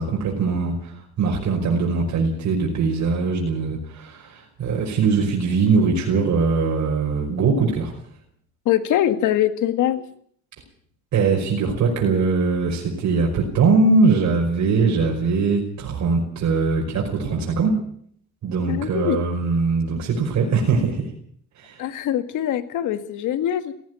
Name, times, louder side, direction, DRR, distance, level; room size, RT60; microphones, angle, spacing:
voice 1, 0.0-7.9 11.1-17.7 18.4-21.1 21.6-21.8, right 4 dB, 70° right, -1 dB, 5.5 m, -21 dB
voice 2, 8.7-10.0 18.7-19.2 21.8-23.7, left 11 dB, 85° left, 10 dB, 2.0 m, -22 dB
17.5 x 16.0 x 9.5 m, 0.63 s
cardioid pair, 90°, 30 cm